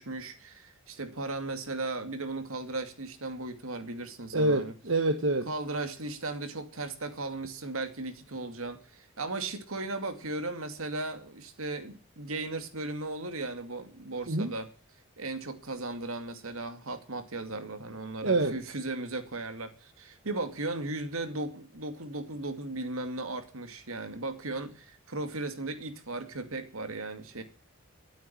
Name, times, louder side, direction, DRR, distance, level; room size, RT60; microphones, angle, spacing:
voice 1, 0.0-4.7 5.5-14.7 15.2-27.4, right 2 dB, 80° right, 8 dB, 2.4 m, -36 dB
voice 2, 4.3-5.5 14.3-14.5 18.2-18.5, right 2 dB, 65° right, 8 dB, 1.2 m, -26 dB
12.5 x 9.2 x 8.8 m, 0.37 s
head